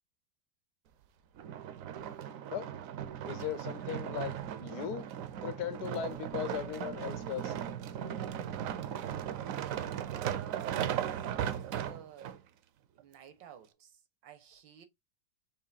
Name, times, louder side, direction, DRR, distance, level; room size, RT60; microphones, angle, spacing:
sound 1, 1.4-12.4 13.0-13.1, right 10 dB, 70° right, 0.8 m, -37 dB
voice 1, 3.3-5.1 5.4-7.5, left 9 dB, 65° left, 1.2 m, -38 dB
voice 2, 9.3-12.4 12.9-14.8, right 9 dB, 85° right, 1.6 m, -52 dB
6.6 x 2.9 x 2.4 m
omnidirectional pair, 1.9 m